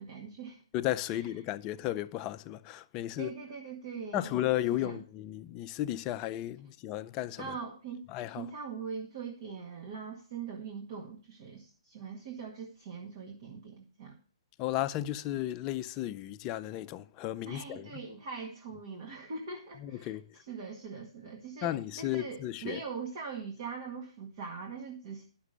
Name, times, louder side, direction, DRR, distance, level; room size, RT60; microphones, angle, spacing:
voice 1, 0.0-0.6 1.1-1.3 3.2-4.4 4.8-5.0 7.4-8.0 8.3-14.2 17.5-20.2 20.5-25.2, right 5 dB, 45° right, 1.8 m, -42 dB
voice 2, 0.7-3.3 4.1-7.6 8.1-8.5 14.6-18.0 19.8-20.3 21.6-22.8, left 14 dB, 25° left, 0.4 m, -34 dB
11.0 x 6.0 x 6.7 m
hypercardioid pair, 155°, 3 cm